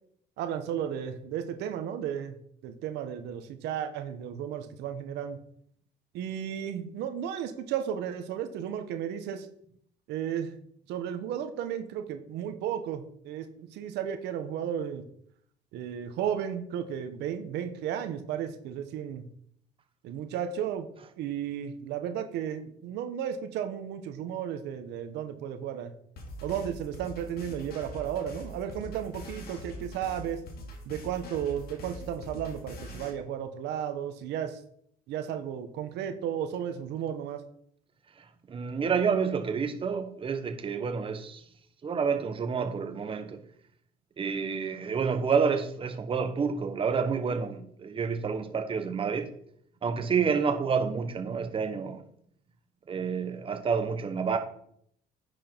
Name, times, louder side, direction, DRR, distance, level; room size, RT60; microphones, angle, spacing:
voice 1, 0.4-2.4 2.6-5.4 6.1-9.5 10.1-10.6 10.9-15.1 15.7-19.3 20.0-20.9 21.2-25.9 26.4-30.4 30.9-34.6 35.1-37.4, right 9 dB, 85° right, 1.1 m, -34 dB
sound 1, 26.2-33.1, left 1 dB, 65° left, 2.4 m, -43 dB
voice 2, 38.2-41.4 41.8-43.4 44.2-49.3 49.8-52.0 52.9-54.4, right 6 dB, 30° right, 1.1 m, -29 dB
10.0 x 6.2 x 4.5 m
cardioid pair, 110°, 17 cm